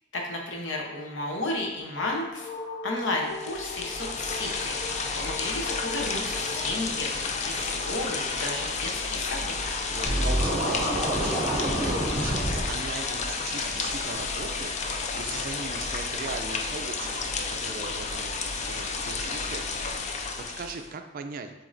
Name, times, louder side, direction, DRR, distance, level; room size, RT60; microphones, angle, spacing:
voice 1, 0.1-2.5 2.8-4.7 5.1-7.1 7.5-9.6, left 2 dB, 80° left, 0 dB, 0.9 m, -32 dB
sound 1, 1.6-7.6, left 3 dB, 55° left, 1.4 m, -40 dB
sound 2, 3.2-20.9, left 4 dB, 40° left, 0.4 m, -31 dB
voice 2, 9.9-21.5, right 4 dB, 50° right, 7 dB, 0.4 m, -39 dB
Scratching (performance technique), 10.1-12.6, right 1 dB, 25° right, 0.8 m, -27 dB
7.1 x 2.8 x 2.6 m, 1.0 s
head